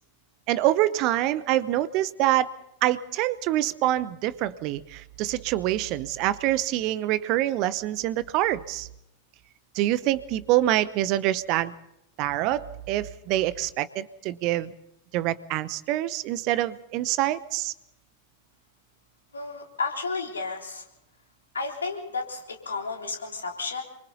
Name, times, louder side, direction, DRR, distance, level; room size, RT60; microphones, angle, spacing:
voice 1, 0.5-2.5 2.8-8.9 9.7-11.7 12.2-14.7 15.1-17.7, right 14 dB, 40° right, 18 dB, 0.9 m, -25 dB
voice 2, 19.3-20.8 21.5-23.8, left 4 dB, 70° left, 1 dB, 3.4 m, -32 dB
27.0 x 24.0 x 4.1 m, 0.86 s
figure-of-eight pair, 90°, 0 cm